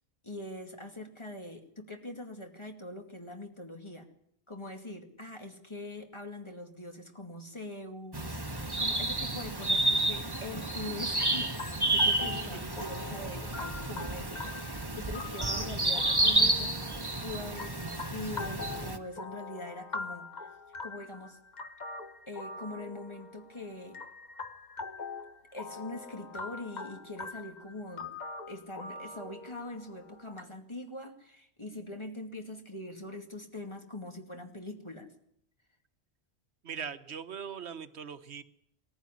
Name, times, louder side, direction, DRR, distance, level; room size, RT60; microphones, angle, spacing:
voice 1, 0.2-4.1 4.5-14.4 15.0-20.3 20.8-21.4 22.3-24.0 25.5-28.1 28.5-35.1, left 2 dB, 25° left, 4 dB, 2.4 m, -43 dB
sound 1, 8.1-19.0, right 2 dB, 20° right, 1.4 m, -30 dB
sound 2, 11.2-30.4, left 3 dB, 45° left, 1.4 m, -43 dB
voice 2, 12.3-12.7 36.6-38.4, right 7 dB, 85° right, 12 dB, 1.3 m, -41 dB
20.0 x 14.5 x 10.0 m, 0.71 s
omnidirectional pair, 1.1 m